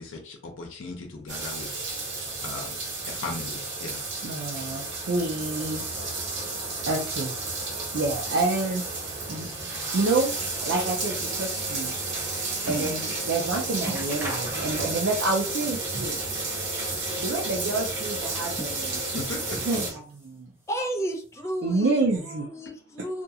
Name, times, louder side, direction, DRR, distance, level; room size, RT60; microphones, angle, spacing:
voice 1, 0.0-1.8 2.4-2.8 3.1-4.0 12.6-12.9 19.1-19.6, left 3 dB, 90° left, 1 dB, 0.6 m, -37 dB
sound 1, 1.3-19.9, right 3 dB, 60° right, 1.2 m, -32 dB
voice 2, 4.2-5.8 6.9-7.3 7.7-8.8 9.3-9.5 9.9-10.3 10.6-11.9 12.7-16.2 17.2-19.0 19.7-20.5 21.6-22.5 23.0-23.1, right 3 dB, 85° right, -2 dB, 0.5 m, -28 dB
sound 2, 12.6-13.1 13.4-13.5 13.8-15.1 15.4-16.3 16.7-17.6 18.2-19.2 19.7-20.4 20.7-21.4 22.1-22.2, right 1 dB, 15° right, 0.7 m, -41 dB
voice 3, 20.7-23.2, right 1 dB, 15° left, 4 dB, 0.4 m, -33 dB
2.6 x 2.3 x 2.7 m, 0.42 s
head